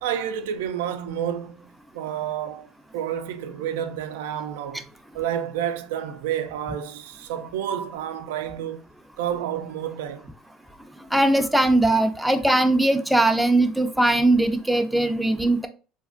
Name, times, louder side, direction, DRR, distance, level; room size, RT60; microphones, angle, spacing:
voice 1, 0.0-4.9 5.1-8.8 9.2-10.3, right 9 dB, 90° right, 0.3 m, -30 dB
voice 2, 11.1-15.7, right 1 dB, 5° right, 0.3 m, -20 dB
3.3 x 2.1 x 2.4 m
supercardioid pair, 95°, 0 cm